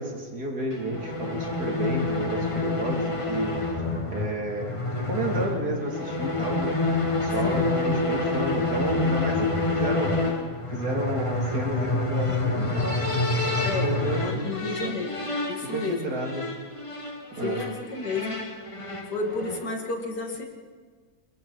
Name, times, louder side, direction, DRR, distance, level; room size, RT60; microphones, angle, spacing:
voice 1, 0.0-3.8 4.1-6.7 7.2-10.3 10.7-13.2 13.8-14.5 14.8-14.9 15.6-16.5 17.3-17.6, right 1 dB, 70° right, -1 dB, 3.6 m, -31 dB
sound 1, 0.7-19.8, left 2 dB, 20° left, 1.4 m, -28 dB
voice 2, 13.6-15.2 15.5-16.1 17.4-18.6 19.1-20.5, left 4 dB, 80° left, 3 dB, 2.8 m, -32 dB
28.0 x 22.0 x 4.3 m, 1.5 s
omnidirectional pair, 1.7 m